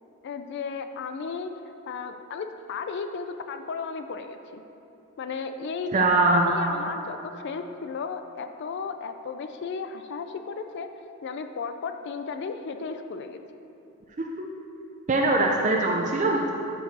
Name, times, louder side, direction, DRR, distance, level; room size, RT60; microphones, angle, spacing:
voice 1, 0.2-1.5 1.9-4.6 5.2-10.9 11.2-13.4, left 5 dB, 55° left, 7 dB, 0.3 m, -34 dB
voice 2, 5.9-6.7 15.1-16.5, right 2 dB, 35° right, 0 dB, 0.5 m, -22 dB
12.0 x 4.6 x 4.1 m, 2.9 s
head